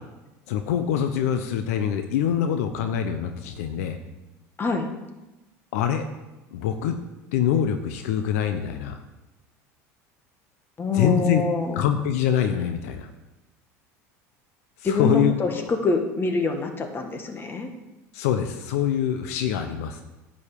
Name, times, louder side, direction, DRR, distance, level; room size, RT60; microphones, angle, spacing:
voice 1, 0.5-4.0 5.7-6.1 6.5-6.9 7.3-9.0 10.9-11.4 11.7-13.1 14.8-15.7 18.1-20.0, left 9 dB, 80° left, 7 dB, 0.9 m, -24 dB
voice 2, 10.8-11.8 14.8-17.7, left 3 dB, 30° left, 4 dB, 1.9 m, -25 dB
10.5 x 5.4 x 8.4 m, 1.0 s
supercardioid pair, 100°, 8 cm